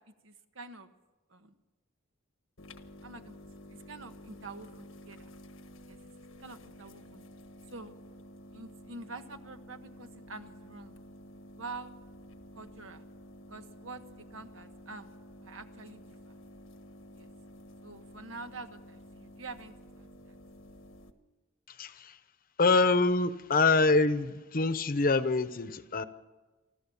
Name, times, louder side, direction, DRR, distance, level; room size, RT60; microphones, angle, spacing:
voice 1, 0.2-0.9 1.3-1.5 3.0-3.3 3.7-5.3 5.9-7.2 7.7-7.9 8.5-11.0 11.6-11.9 12.5-13.0 13.5-15.1 15.4-16.3 17.1-17.3 17.8-20.4, right 3 dB, 85° right, 1.3 m, -46 dB
sound 1, 2.6-21.1, equal, 90° left, 1.4 m, -51 dB
voice 2, 21.7-22.2 22.6-26.0, left 3 dB, 45° left, 0.9 m, -25 dB
28.5 x 13.0 x 7.1 m
head